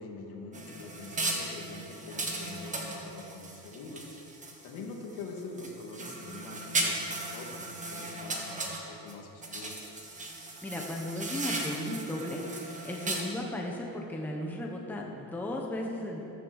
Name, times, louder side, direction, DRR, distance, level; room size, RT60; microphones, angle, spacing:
voice 1, 0.0-4.0 4.6-9.7, left 3 dB, 60° left, 0 dB, 2.6 m, -44 dB
sound 1, 0.5-4.8 5.2-9.1 9.4-13.2, right 2 dB, 15° right, 1.7 m, -36 dB
voice 2, 10.6-16.2, left 1 dB, 5° left, -1 dB, 1.1 m, -36 dB
14.5 x 13.5 x 6.5 m, 2.8 s
cardioid pair, 170°, 43 cm